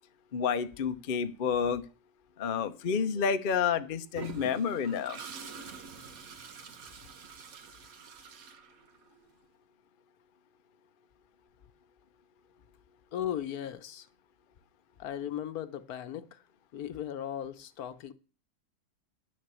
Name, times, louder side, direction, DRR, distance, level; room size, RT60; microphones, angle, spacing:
voice 1, 0.3-1.8 2.4-5.2, left 6 dB, 45° left, 0.7 m, -29 dB
Toilet flush, 4.1-9.2, right 5 dB, 65° right, 1.6 m, -46 dB
voice 2, 13.1-14.1 15.0-16.4 16.7-18.1, left 10 dB, 70° left, 1.3 m, -37 dB
10.0 x 6.6 x 8.2 m
omnidirectional pair, 1.7 m